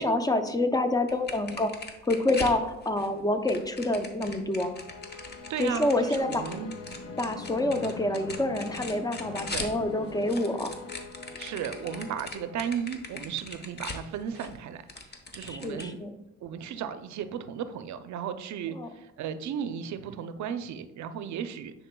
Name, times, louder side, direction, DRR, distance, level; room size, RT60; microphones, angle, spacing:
voice 1, 0.0-1.7 2.0-4.7 5.6-6.4 7.2-10.8 15.4-16.1 18.7-18.9, left 2 dB, 10° left, 8 dB, 0.6 m, -27 dB
sound 1, 1.1-3.1 3.5-9.8 10.0-14.6 14.9-15.8, left 3 dB, 35° left, 1.0 m, -40 dB
sound 2, 4.6-13.1, left 4 dB, 55° left, 0.7 m, -43 dB
voice 2, 5.5-6.8 9.5-9.7 11.4-14.8 15.3-16.0 16.4-21.7, right 8 dB, 70° right, 11 dB, 0.5 m, -35 dB
9.8 x 4.3 x 2.2 m, 0.97 s
cardioid pair, 90°, 30 cm